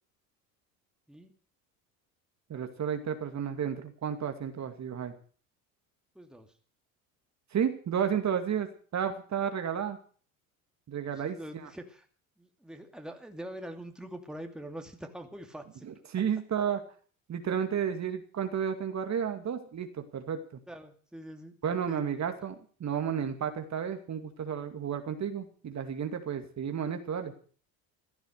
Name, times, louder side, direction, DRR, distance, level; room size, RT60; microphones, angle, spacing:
voice 1, 2.5-5.1 7.5-10.0 10.9-11.7 15.8-16.8 17.3-20.4 21.6-27.3, right 8 dB, 40° right, 7 dB, 2.4 m, -32 dB
voice 2, 6.1-6.5 11.0-12.1 12.4-15.9 20.7-22.0, right 1 dB, ahead, 4 dB, 2.6 m, -44 dB
15.5 x 12.0 x 6.7 m, 0.43 s
hypercardioid pair, 80°, 42 cm